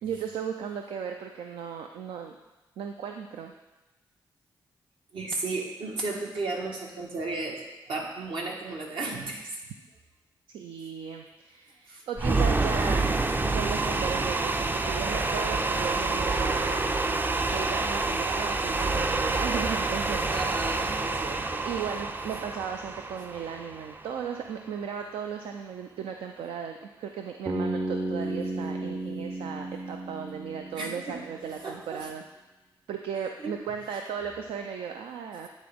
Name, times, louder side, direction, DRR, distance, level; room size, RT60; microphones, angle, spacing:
voice 1, 0.0-2.4 2.8-3.5 10.5-13.1 13.4-17.2 17.5-20.3 21.6-32.2 32.9-35.5, right 7 dB, 85° right, 4 dB, 0.4 m, -36 dB
voice 2, 5.1-7.6 7.9-9.6 11.9-12.0 20.3-21.6 28.6-28.7 30.8-32.1 33.1-33.5, right 3 dB, 70° right, -1 dB, 1.4 m, -34 dB
sound 1, 12.2-24.3, right 3 dB, 20° right, 0.4 m, -28 dB
Bass guitar, 27.5-31.5, right 2 dB, 45° right, 0.9 m, -33 dB
9.4 x 3.9 x 3.5 m, 1.1 s
cardioid pair, 60°, 9 cm